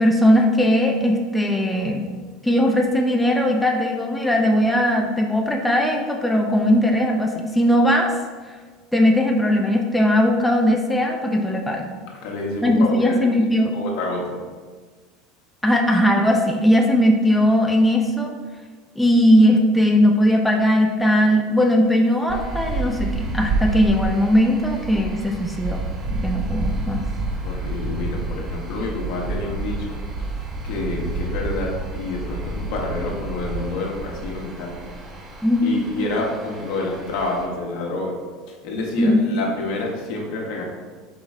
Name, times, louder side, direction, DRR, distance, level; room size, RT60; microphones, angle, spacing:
voice 1, 0.0-2.0 2.4-8.1 8.9-11.9 12.6-13.7 15.6-18.3 19.0-25.8 26.2-27.0 35.4-35.8 39.0-39.3, equal, 5° left, 0 dB, 0.5 m, -19 dB
voice 2, 12.2-13.3 13.7-14.4 27.4-30.0 30.6-34.8 35.6-38.2 38.5-40.6, left 2 dB, 70° left, -1 dB, 1.0 m, -28 dB
sound 1, 22.3-37.5, right 2 dB, 30° right, 0.8 m, -29 dB
4.8 x 3.1 x 3.5 m, 1.4 s
supercardioid pair, 100°, 0 cm